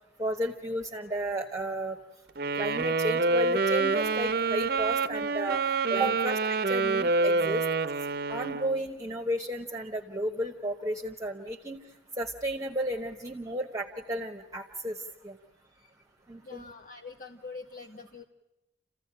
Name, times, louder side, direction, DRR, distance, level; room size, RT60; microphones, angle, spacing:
voice 1, 0.2-2.0 2.6-5.6 5.9-7.6 8.3-11.8 12.2-15.4 16.3-16.6, right 1 dB, 20° right, 2 dB, 1.2 m, -33 dB
Wind instrument woodwind instrument, 2.4-8.8, right 3 dB, 55° right, 0.7 m, -27 dB
voice 2, 16.4-18.2, left 4 dB, 50° left, 3 dB, 1.0 m, -45 dB
28.5 x 15.5 x 8.8 m, 1.0 s
head